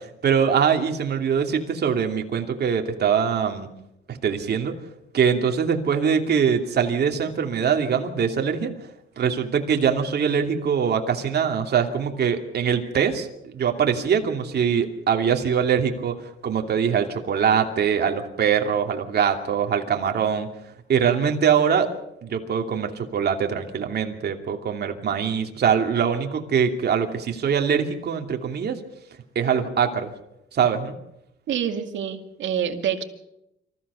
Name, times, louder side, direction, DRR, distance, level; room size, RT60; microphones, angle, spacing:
voice 1, 0.0-3.7 4.1-4.7 5.1-8.7 9.2-20.5 20.9-21.9 22.2-28.8 29.3-30.1 30.5-30.9, right 7 dB, 55° right, 4 dB, 2.7 m, -23 dB
voice 2, 31.5-33.0, right 9 dB, 70° right, 6 dB, 2.3 m, -26 dB
26.0 x 15.0 x 7.0 m, 0.84 s
cardioid pair, 90°, 20 cm